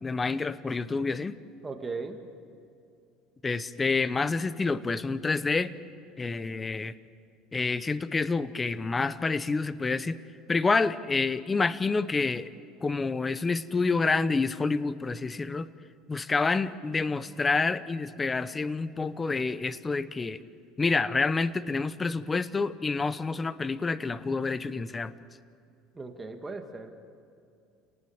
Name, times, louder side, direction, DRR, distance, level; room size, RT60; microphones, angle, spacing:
voice 1, 0.0-1.4 3.4-5.7 6.2-6.9 7.5-10.2 10.5-12.5 12.8-15.7 16.1-20.4 20.8-25.1, left 4 dB, 20° left, 15 dB, 0.8 m, -28 dB
voice 2, 1.6-2.2 25.9-26.9, right 4 dB, 15° right, 5 dB, 2.0 m, -37 dB
29.0 x 19.0 x 7.2 m, 2.5 s
cardioid pair, 130°, 0 cm